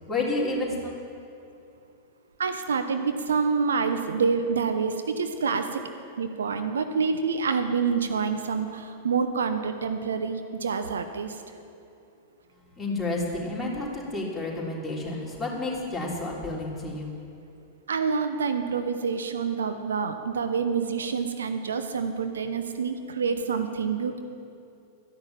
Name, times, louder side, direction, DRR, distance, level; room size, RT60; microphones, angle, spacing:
voice 1, 0.1-0.9 12.8-17.1, left 2 dB, 5° left, -5 dB, 3.4 m, -30 dB
voice 2, 2.4-5.8 6.2-11.4 17.9-24.2, right 5 dB, 70° right, 7 dB, 0.8 m, -27 dB
13.5 x 10.5 x 7.3 m, 2.6 s
figure-of-eight pair, 95°, 0 cm